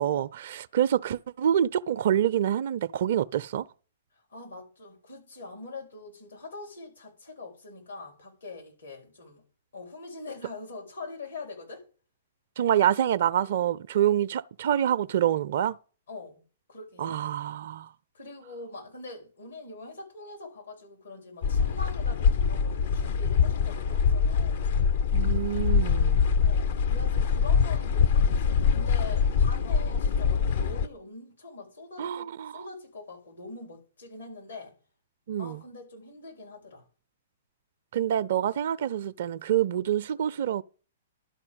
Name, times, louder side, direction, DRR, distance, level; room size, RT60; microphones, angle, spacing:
voice 1, 0.0-3.7 12.6-15.8 17.0-17.9 25.1-26.2 32.0-32.6 35.3-35.6 37.9-40.6, right 10 dB, 60° right, 0.4 m, -26 dB
voice 2, 4.3-9.4 9.7-11.8 16.1-16.4 16.7-17.3 18.1-24.7 26.4-34.7 35.4-36.8, left 3 dB, 80° left, 4.2 m, -43 dB
sound 1, 21.4-30.9, left 6 dB, 55° left, 0.6 m, -24 dB
11.5 x 4.3 x 8.0 m
figure-of-eight pair, 115°, 0 cm